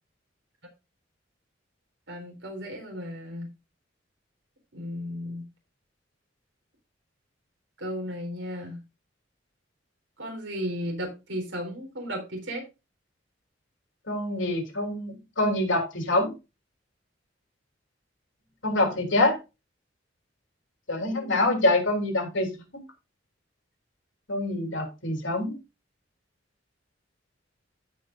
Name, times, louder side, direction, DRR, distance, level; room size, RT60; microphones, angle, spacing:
voice 1, 2.1-3.5 4.7-5.5 7.8-8.8 10.2-12.6, equal, 75° right, 2 dB, 4.0 m, -34 dB
voice 2, 14.1-16.3 18.6-19.4 20.9-22.6 24.3-25.6, left 2 dB, 85° left, 3 dB, 3.3 m, -25 dB
15.5 x 5.3 x 2.6 m, 0.27 s
head